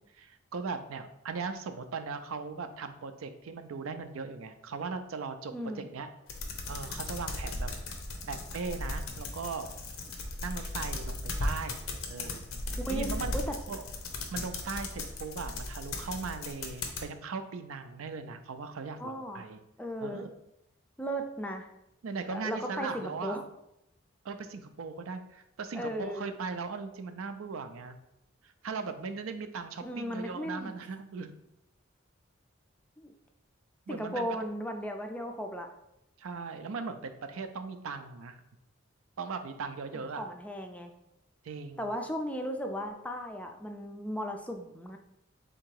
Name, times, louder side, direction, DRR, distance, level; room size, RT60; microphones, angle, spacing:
voice 1, 0.2-6.1 6.7-7.7 8.2-9.7 10.4-11.8 12.1-12.4 12.8-13.4 13.7-13.8 14.3-19.6 20.0-20.3 22.0-23.4 24.2-28.0 28.4-31.3 33.9-34.3 36.2-38.4 39.2-40.2 41.4-41.9, right 4 dB, 85° right, 9 dB, 0.4 m, -38 dB
voice 2, 5.5-5.8 12.8-13.5 19.0-19.5 19.8-20.2 21.0-21.7 22.3-23.4 25.7-26.3 29.8-30.7 33.0-33.1 33.9-35.7 40.2-40.9 41.8-45.0, equal, 5° left, 4 dB, 0.3 m, -36 dB
sound 1, 6.3-17.0, left 2 dB, 85° left, 0.7 m, -37 dB
3.6 x 2.9 x 4.6 m, 0.83 s
head